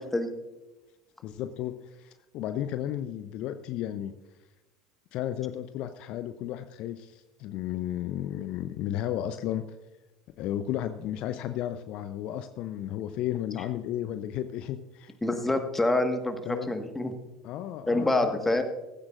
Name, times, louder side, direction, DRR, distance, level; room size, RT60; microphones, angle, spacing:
voice 1, 1.2-4.1 5.1-9.6 10.4-15.1 16.4-16.7 17.4-18.4, left 12 dB, 50° left, 10 dB, 0.6 m, -33 dB
voice 2, 15.2-17.1 17.9-18.6, left 2 dB, 10° left, 6 dB, 1.5 m, -26 dB
15.5 x 13.5 x 2.5 m, 1.1 s
figure-of-eight pair, 70°, 2 cm